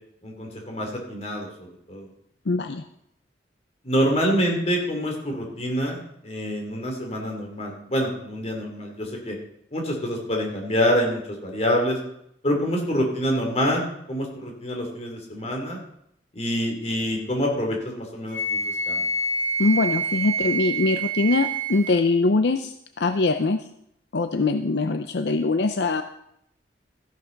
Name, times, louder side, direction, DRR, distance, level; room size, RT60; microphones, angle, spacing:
voice 1, 0.2-2.1 3.8-9.4 9.7-12.0 12.4-15.8 16.3-18.6 18.9-19.0, equal, 35° left, 1 dB, 3.0 m, -26 dB
voice 2, 2.5-2.8 19.6-23.6 24.1-26.0, left 3 dB, 70° left, 8 dB, 0.6 m, -22 dB
Wind instrument woodwind instrument, 18.3-22.0, right 3 dB, 45° right, 1.9 m, -27 dB
14.0 x 11.0 x 4.0 m, 0.76 s
head